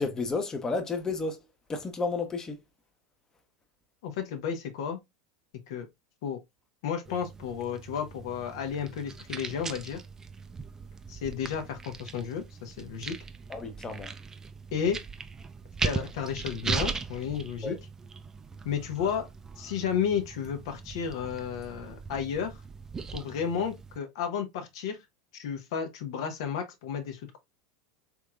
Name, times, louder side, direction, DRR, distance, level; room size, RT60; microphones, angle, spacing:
voice 1, 0.0-1.4 1.7-2.6 13.5-14.1 17.6-17.8, left 3 dB, 20° left, 0.7 m, -31 dB
voice 2, 4.0-5.0 5.7-5.9 6.2-6.4 6.8-10.0 11.1-13.2 14.7-15.0 15.8-17.8 18.6-19.3 19.6-22.6 23.1-25.0 25.3-27.4, left 7 dB, 70° left, 0.8 m, -32 dB
sound 1, 7.0-24.0, right 5 dB, 20° right, 0.4 m, -39 dB
3.5 x 3.1 x 2.3 m
hypercardioid pair, 100°, 3 cm